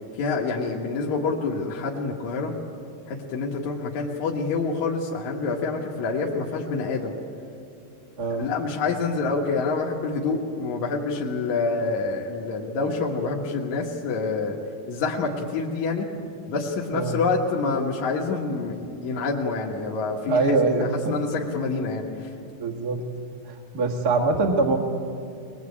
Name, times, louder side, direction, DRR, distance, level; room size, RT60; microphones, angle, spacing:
voice 1, 0.2-2.5 3.1-7.1 8.4-14.6 14.9-16.1 16.5-20.4 21.1-22.3, left 4 dB, 65° left, -2 dB, 2.8 m, -27 dB
voice 2, 20.2-21.1 22.6-23.0 23.5-24.8, right 3 dB, 35° right, 1 dB, 1.9 m, -23 dB
22.0 x 21.5 x 8.5 m, 2.5 s
omnidirectional pair, 3.7 m